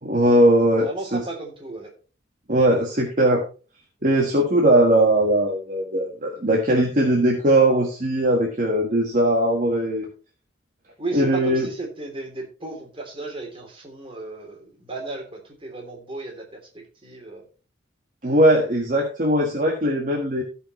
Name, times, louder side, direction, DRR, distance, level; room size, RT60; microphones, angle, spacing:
voice 1, 0.0-1.2 2.5-3.4 4.0-10.1 11.1-11.7 18.2-20.4, right 1 dB, 45° right, 0 dB, 1.6 m, -19 dB
voice 2, 0.8-1.9 11.0-16.6 17.0-17.4, right 2 dB, 30° right, 0 dB, 3.3 m, -34 dB
17.0 x 5.7 x 3.2 m, 0.35 s
head